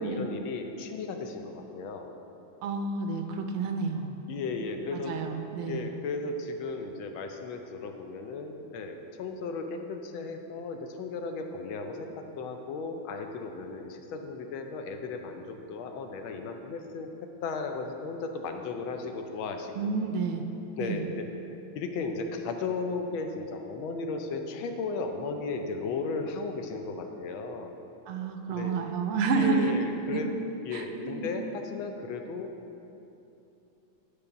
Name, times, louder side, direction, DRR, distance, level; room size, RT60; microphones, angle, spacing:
voice 1, 0.0-2.1 4.3-5.1 5.7-19.7 20.8-27.7 28.5-28.8 29.3-30.3 30.6-32.5, left 4 dB, 75° left, 5 dB, 1.4 m, -35 dB
voice 2, 2.6-4.2 4.9-5.9 19.7-20.4 20.8-21.1 28.1-29.7 30.1-30.3 30.7-31.3, right 4 dB, 85° right, 5 dB, 1.5 m, -30 dB
10.0 x 3.5 x 6.8 m, 2.9 s
omnidirectional pair, 2.3 m